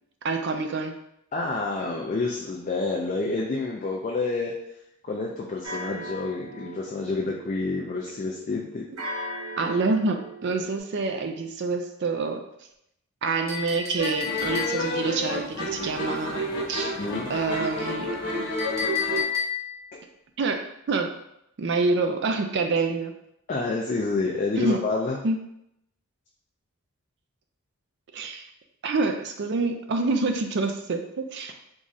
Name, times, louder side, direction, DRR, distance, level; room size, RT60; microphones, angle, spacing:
voice 1, 0.2-0.9 9.6-12.4 13.2-17.0 17.3-18.1 20.4-21.1 21.6-23.1 24.6-24.8 25.2-25.4 28.1-28.5 28.8-31.5, right 3 dB, 55° right, 5 dB, 0.4 m, -27 dB
voice 2, 1.3-4.5 5.0-8.9 17.0-17.3 23.5-25.2, left 3 dB, 35° left, -2 dB, 0.3 m, -28 dB
sound 1, 5.6-10.8, equal, 85° right, 0.9 m, -39 dB
Chink clink, 13.5-15.1 18.6-19.9, left 7 dB, 15° right, 0.6 m, -30 dB
sound 2, 14.0-19.2, left 1 dB, 55° left, 1.0 m, -30 dB
3.6 x 3.0 x 2.6 m, 0.79 s
head